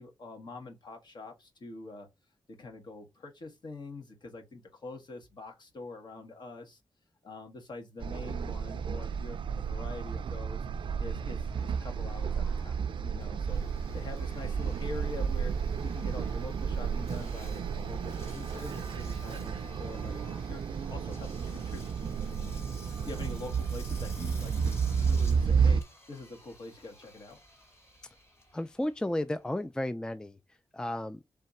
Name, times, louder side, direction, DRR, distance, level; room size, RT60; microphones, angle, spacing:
voice 1, 0.0-2.1 2.5-6.8 7.2-10.7 11.0-13.7 13.9-20.2 20.5-20.6 20.9-24.5 24.9-25.8 26.1-27.4, left 3 dB, 60° left, 1.6 m, -45 dB
sound 1, 8.0-25.8, right 6 dB, 75° right, 0.4 m, -32 dB
Engine, 11.5-29.9, left 2 dB, 30° left, 2.0 m, -53 dB
voice 2, 28.5-30.4 30.7-31.2, left 1 dB, 10° left, 0.3 m, -33 dB
3.8 x 3.3 x 4.1 m
wide cardioid pair, 110°, 9 cm